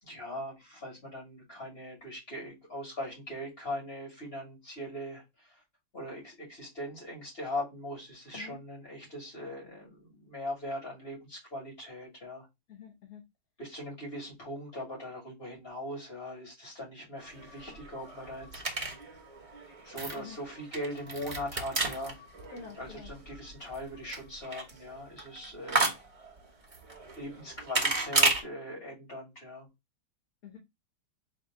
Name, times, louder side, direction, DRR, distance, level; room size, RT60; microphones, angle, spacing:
voice 1, 0.1-5.2 5.9-12.5 13.6-18.6 19.8-22.1 22.8-25.9 27.1-29.7, left 1 dB, 30° left, 2.8 m, -40 dB
voice 2, 12.7-13.2 20.1-20.4 22.5-23.1 25.7-25.9 30.4-30.6, left 6 dB, 55° left, 1.3 m, -47 dB
sound 1, 17.2-28.4, right 3 dB, 25° right, 0.8 m, -33 dB
4.4 x 2.9 x 3.6 m
omnidirectional pair, 1.9 m